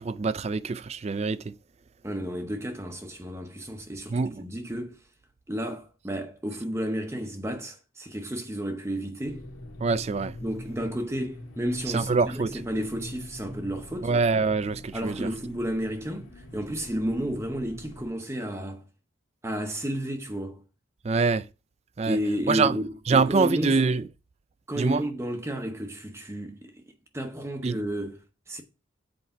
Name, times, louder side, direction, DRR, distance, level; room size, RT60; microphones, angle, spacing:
voice 1, 0.0-1.4 4.1-4.4 9.8-10.3 11.9-12.5 14.0-15.3 21.0-21.4 22.0-22.2 22.5-22.7 23.1-24.0 24.8-25.0 27.6-27.8, right 4 dB, 30° right, 0.3 m, -24 dB
voice 2, 2.0-5.0 5.5-9.5 10.4-14.1 14.9-18.8 19.4-20.6 22.0-23.8 24.7-26.8 27.1-28.6, equal, 15° right, 0.7 m, -32 dB
sound 1, 9.2-18.1, left 1 dB, 90° left, 1.7 m, -43 dB
7.8 x 4.7 x 5.6 m
head